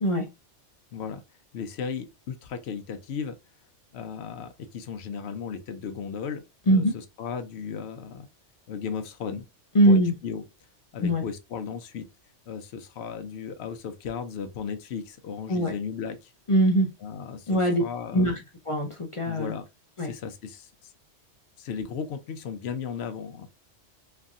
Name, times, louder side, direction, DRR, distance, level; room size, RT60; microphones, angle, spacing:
voice 1, 0.9-1.2 1.5-3.4 3.9-8.3 8.7-9.5 9.9-10.4 10.9-12.1 12.5-16.3 17.0-18.4 19.2-19.7 20.0-20.9 21.6-23.5, left 6 dB, 65° left, 0.8 m, -35 dB
voice 2, 9.7-10.1 11.0-11.2 15.5-15.7 16.5-16.9 17.5-17.8 18.1-18.4 18.7-19.5 20.0-20.1, right 1 dB, 50° left, 0.3 m, -21 dB
3.1 x 2.6 x 2.3 m
omnidirectional pair, 1.2 m